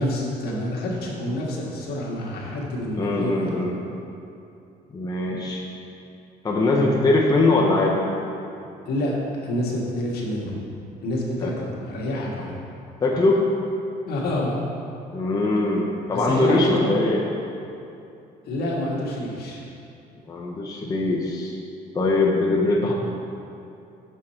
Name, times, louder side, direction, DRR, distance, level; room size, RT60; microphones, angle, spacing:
voice 1, 0.0-3.6 5.2-5.4 8.8-10.6 11.0-12.6 14.1-14.6 16.1-17.0 18.4-19.6, left 1 dB, 70° left, -3 dB, 1.6 m, -27 dB
voice 2, 3.0-3.7 4.9-5.6 6.4-8.1 11.4-11.5 13.0-13.5 15.1-17.2 20.3-21.5 21.9-22.9, left 2 dB, 20° left, -3 dB, 0.9 m, -21 dB
6.5 x 6.5 x 4.4 m, 2.7 s
cardioid pair, 110°, 17 cm